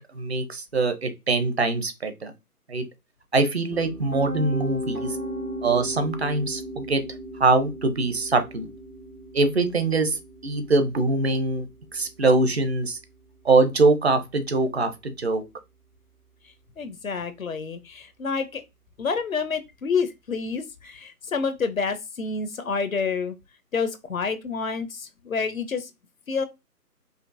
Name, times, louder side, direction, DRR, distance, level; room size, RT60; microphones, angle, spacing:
voice 1, 0.0-2.3 2.7-2.8 3.3-5.2 5.6-7.0 7.4-8.7 9.3-11.7 11.9-13.0 13.4-15.4, right 3 dB, 40° right, 0.8 m, -23 dB
Piano, 3.7-15.6, equal, 85° right, 1.9 m, -37 dB
voice 2, 16.8-18.6 19.0-23.3 23.7-25.9 26.3-26.5, left 5 dB, 60° left, 0.7 m, -28 dB
5.1 x 2.5 x 2.6 m
figure-of-eight pair, 150°, 48 cm